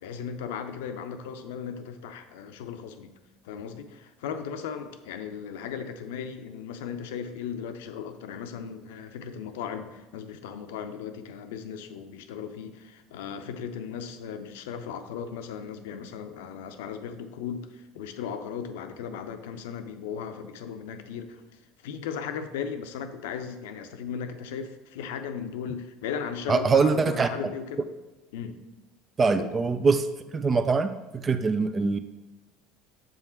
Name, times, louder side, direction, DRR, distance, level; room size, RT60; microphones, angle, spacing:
voice 1, 0.0-3.1 3.4-21.4 21.8-27.9 28.3-28.6 29.4-29.5, left 7 dB, 80° left, 9 dB, 0.6 m, -36 dB
voice 2, 26.5-27.3 29.2-30.1 30.3-32.0, right 4 dB, 30° right, 10 dB, 0.4 m, -23 dB
7.7 x 3.6 x 4.4 m, 1.1 s
hypercardioid pair, 85°, 0 cm